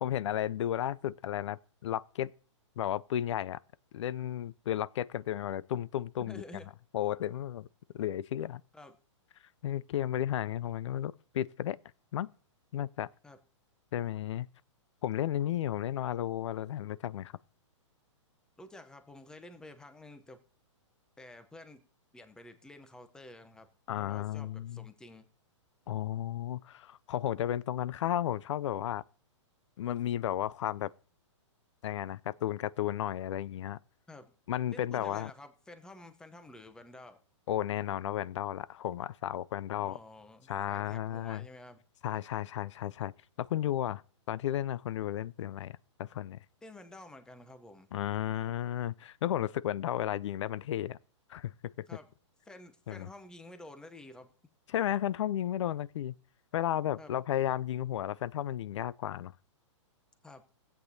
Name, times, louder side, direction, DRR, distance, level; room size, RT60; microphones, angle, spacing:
voice 1, 0.0-2.3 2.8-3.6 3.9-6.4 6.9-7.7 7.9-8.6 9.6-11.8 12.1-12.3 12.7-13.1 13.9-14.5 15.0-17.3 23.9-24.9 25.9-29.0 29.8-30.9 31.8-33.8 34.5-35.3 37.5-40.0 40.5-41.5 42.0-43.1 43.4-44.0 44.3-46.4 47.9-51.0 51.3-51.5 51.8-51.9 52.9-53.1 54.7-56.1 56.5-59.3, left 11 dB, 70° left, 0.4 m, -33 dB
voice 2, 6.2-6.7 8.7-9.0 13.2-13.4 18.6-20.4 21.2-21.8 22.1-23.7 23.9-25.3 34.1-34.3 34.7-37.2 39.8-41.8 46.6-47.9 51.9-52.1 52.4-54.3 57.0-57.2 60.2-60.4, left 1 dB, 5° left, 0.7 m, -51 dB
16.0 x 8.2 x 2.7 m
hypercardioid pair, 145°, 16 cm